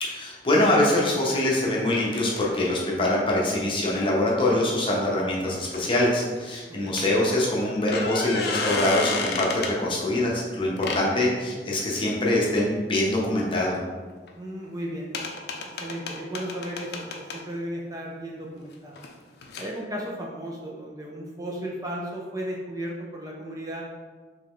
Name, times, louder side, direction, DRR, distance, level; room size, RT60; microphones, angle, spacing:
voice 1, 0.0-13.8, left 1 dB, 30° left, -3 dB, 0.8 m, -24 dB
sound 1, 5.7-6.5 7.0-7.1 7.7-9.8 10.8-11.1 14.3-14.4 14.6-14.7 15.1-17.4 19.0-19.1 19.4-19.7, left 4 dB, 60° left, 0.5 m, -31 dB
voice 2, 14.3-15.2 15.8-19.1 19.6-23.8, right 1 dB, 20° right, -2 dB, 0.4 m, -35 dB
3.6 x 3.2 x 3.6 m, 1.4 s
head